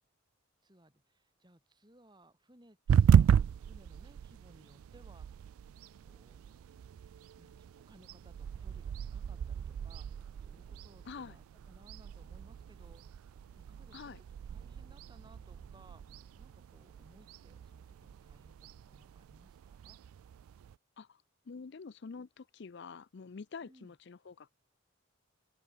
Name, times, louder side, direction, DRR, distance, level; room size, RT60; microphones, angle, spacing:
voice 1, 0.6-5.7 6.0-6.6 7.1-13.3 13.6-20.0 23.6-23.9, right 1 dB, 20° right, 6.1 m, -63 dB
sound 1, 2.9-20.7, right 8 dB, 85° right, 0.3 m, -34 dB
Thunder / Rain, 8.4-20.1, equal, 5° right, 3.6 m, -69 dB
voice 2, 11.1-11.4 13.9-14.2 21.0-24.5, left 5 dB, 55° left, 0.5 m, -47 dB
open air
head